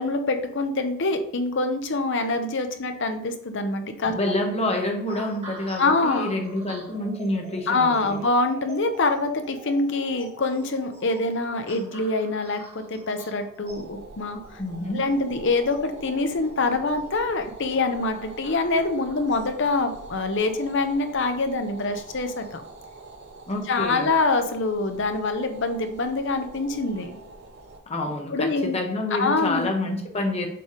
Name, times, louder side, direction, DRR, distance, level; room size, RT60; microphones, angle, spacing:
voice 1, 0.0-4.1 5.8-6.3 7.7-14.6 14.9-22.6 23.7-27.2 28.3-28.7 29.1-29.7, left 3 dB, 55° left, 7 dB, 0.8 m, -25 dB
voice 2, 4.1-8.2 14.6-15.0 23.5-24.1 27.9-30.5, left 2 dB, 30° left, 2 dB, 1.1 m, -28 dB
sound 1, 5.1-21.5 22.2-22.5, right 1 dB, 30° right, 1.5 m, -46 dB
sound 2, 13.6-27.8, right 2 dB, 50° right, 0.8 m, -45 dB
6.9 x 3.4 x 4.9 m, 0.69 s
head